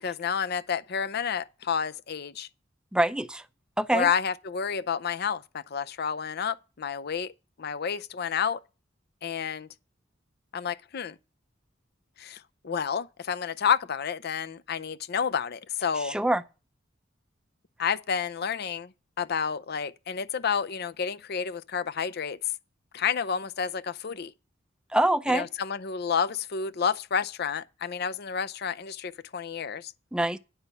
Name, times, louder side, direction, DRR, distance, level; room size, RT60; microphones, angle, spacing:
voice 1, 0.0-2.5 3.9-7.3 7.6-8.6 9.2-9.7 10.5-11.2 12.2-16.2 17.8-22.4 22.9-24.3 25.3-29.9, left 7 dB, 55° left, 0.5 m, -30 dB
voice 2, 2.9-3.4 3.8-4.1 16.0-16.4 24.9-25.5 30.1-30.4, right 1 dB, 5° right, 0.5 m, -25 dB
10.0 x 5.4 x 6.8 m
head